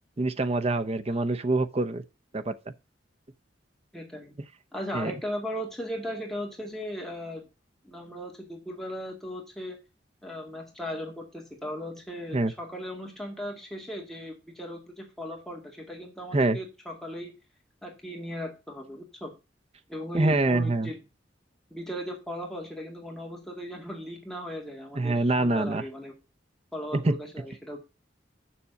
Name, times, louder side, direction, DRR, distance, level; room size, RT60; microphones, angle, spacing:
voice 1, 0.2-2.0 2.3-2.7 4.9-5.1 12.3-12.5 16.3-16.6 20.1-20.9 25.0-25.8 26.9-27.1, right 2 dB, 35° right, 0.7 m, -25 dB
voice 2, 3.9-4.3 4.7-7.4 7.8-9.8 10.2-17.3 17.8-19.3 19.9-21.0 21.7-26.1 26.7-27.8, equal, ahead, 2.1 m, -37 dB
7.1 x 6.1 x 6.5 m
head